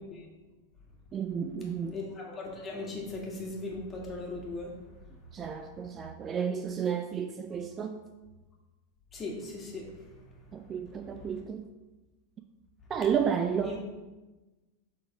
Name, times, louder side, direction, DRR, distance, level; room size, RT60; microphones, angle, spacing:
voice 1, 1.1-2.0 5.3-8.0 10.5-11.7 12.9-13.8, right 7 dB, 25° right, 7 dB, 0.4 m, -32 dB
voice 2, 1.9-4.7 5.6-6.0 9.1-9.9 13.6-13.8, left 3 dB, 20° left, -2 dB, 1.8 m, -38 dB
6.4 x 4.1 x 4.9 m, 1.2 s
figure-of-eight pair, 90°, 0 cm